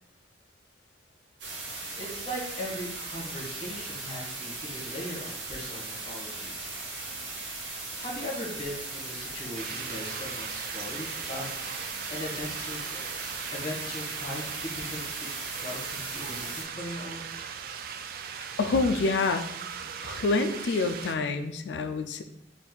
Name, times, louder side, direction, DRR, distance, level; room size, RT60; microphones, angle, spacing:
sound 1, 1.4-16.6, right 3 dB, 75° right, 0.9 m, -38 dB
voice 1, 2.0-6.5 8.0-11.5 12.1-13.0 13.5-15.1 15.6-17.3, left 1 dB, 30° left, -4 dB, 1.5 m, -39 dB
sound 2, 9.5-21.1, right 7 dB, 55° right, 0.3 m, -39 dB
voice 2, 18.6-19.5 20.0-22.2, left 3 dB, 70° left, 8 dB, 0.4 m, -27 dB
4.1 x 2.6 x 3.9 m, 0.77 s
head